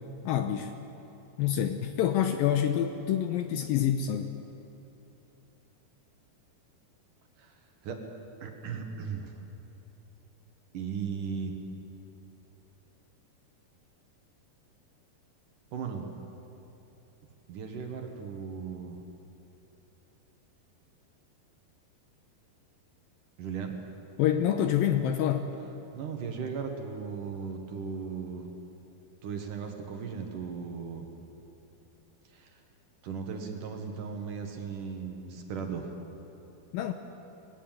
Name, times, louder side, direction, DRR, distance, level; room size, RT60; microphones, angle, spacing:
voice 1, 0.3-0.7 1.4-4.3 24.2-25.5 36.7-36.9, left 10 dB, 75° left, 7 dB, 2.2 m, -27 dB
voice 2, 8.4-9.3 10.7-11.6 15.7-16.1 17.5-19.0 23.4-23.8 25.9-28.5 29.2-31.1 32.3-32.5 33.0-35.9, right 6 dB, 60° right, 3 dB, 2.7 m, -37 dB
21.0 x 16.5 x 9.2 m, 3.0 s
omnidirectional pair, 4.7 m